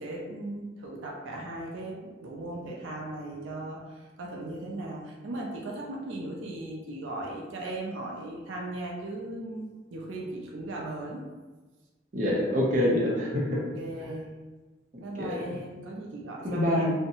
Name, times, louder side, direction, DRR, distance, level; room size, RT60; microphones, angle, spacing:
voice 1, 0.0-11.2 13.8-14.3 15.0-16.9, right 1 dB, 85° right, -2 dB, 0.4 m, -37 dB
voice 2, 12.1-13.6 15.2-15.6 16.4-16.9, left 1 dB, 40° right, -5 dB, 0.6 m, -26 dB
2.6 x 2.1 x 2.8 m, 1.3 s
head